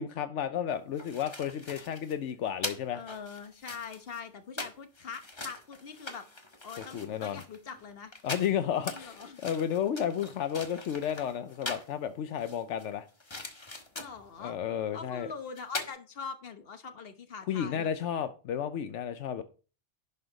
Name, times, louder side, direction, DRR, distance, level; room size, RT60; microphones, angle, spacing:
voice 1, 0.0-3.0 6.9-7.4 8.2-9.2 9.4-13.1 14.4-15.3 17.5-19.4, left 9 dB, 80° left, 1.0 m, -32 dB
sound 1, 0.7-11.9 12.4-14.3 15.3-15.4 15.6-15.9, left 2 dB, 25° left, 1.1 m, -42 dB
voice 2, 2.9-6.2 6.6-8.1 8.9-9.4 13.9-14.6 14.9-17.9, left 5 dB, 55° left, 1.3 m, -43 dB
11.0 x 5.7 x 3.9 m
omnidirectional pair, 1.2 m